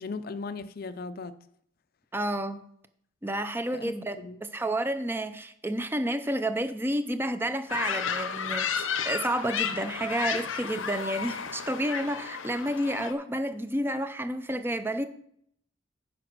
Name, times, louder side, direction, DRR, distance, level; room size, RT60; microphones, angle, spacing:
voice 1, 0.0-1.4 3.7-4.4, left 4 dB, 50° left, 0.5 m, -38 dB
voice 2, 2.1-2.6 3.2-4.2 4.5-15.1, right 1 dB, 10° right, 0.5 m, -30 dB
sound 1, 7.7-13.1, left 7 dB, 90° left, 0.8 m, -32 dB
9.7 x 5.0 x 6.1 m
head